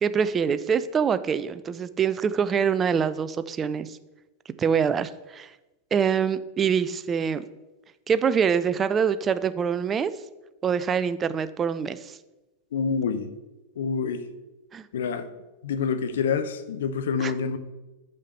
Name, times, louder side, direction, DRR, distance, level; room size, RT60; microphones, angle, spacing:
voice 1, 0.0-4.0 4.6-5.5 5.9-7.5 8.1-10.1 10.6-12.1 14.7-14.8 17.2-17.3, right 7 dB, 25° right, 14 dB, 0.4 m, -25 dB
voice 2, 12.7-13.3 13.8-14.2 14.9-15.3 15.6-17.6, left 6 dB, 60° left, 11 dB, 0.6 m, -27 dB
6.4 x 5.7 x 6.5 m, 1.1 s
figure-of-eight pair, 90°, 0 cm